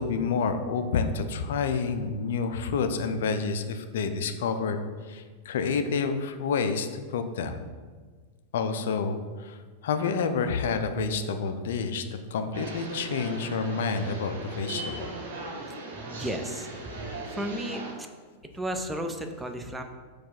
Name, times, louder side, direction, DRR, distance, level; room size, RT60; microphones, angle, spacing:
voice 1, 0.0-4.8 5.1-7.6 8.5-9.5 9.8-12.0 12.3-15.1, left 5 dB, 60° left, 8 dB, 0.3 m, -29 dB
sound 1, 12.5-17.9, right 2 dB, 55° right, 0.8 m, -38 dB
voice 2, 16.0-16.7 17.0-18.1 18.5-19.8, right 1 dB, 10° right, 5 dB, 0.4 m, -34 dB
4.3 x 2.4 x 4.2 m, 1.5 s
figure-of-eight pair, 90°, 0 cm